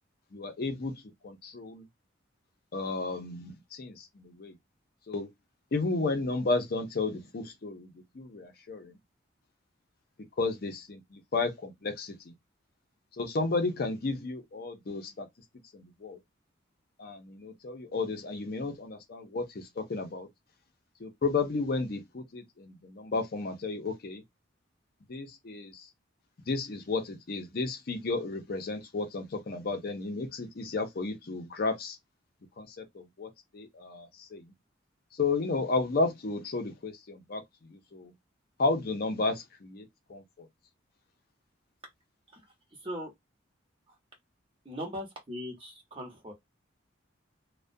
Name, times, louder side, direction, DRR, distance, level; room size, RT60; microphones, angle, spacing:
voice 1, 0.3-0.9 1.2-1.8 2.7-4.5 5.1-5.3 5.7-9.0 10.4-12.3 13.2-15.3 15.7-16.2 17.0-20.3 21.0-24.2 25.1-25.9 26.5-32.0 32.6-34.5 35.1-37.4 37.7-38.1 38.6-40.5, left 3 dB, 50° left, 0.5 m, -33 dB
voice 2, 44.6-46.3, equal, 30° right, 0.9 m, -39 dB
2.3 x 2.1 x 2.5 m
head